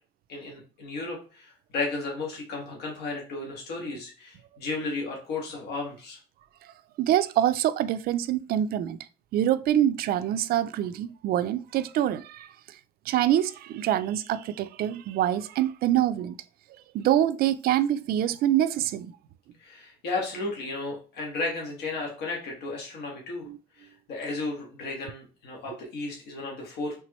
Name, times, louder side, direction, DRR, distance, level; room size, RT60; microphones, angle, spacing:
voice 1, 0.3-6.2 19.6-23.5 23.8-26.9, left 3 dB, 80° left, 1.6 m, -34 dB
voice 2, 7.0-9.0 9.3-12.5 13.1-16.4 16.9-19.1 23.5-23.6, right 11 dB, 65° right, 0.4 m, -25 dB
4.4 x 3.4 x 3.0 m
cardioid pair, 110°, 17 cm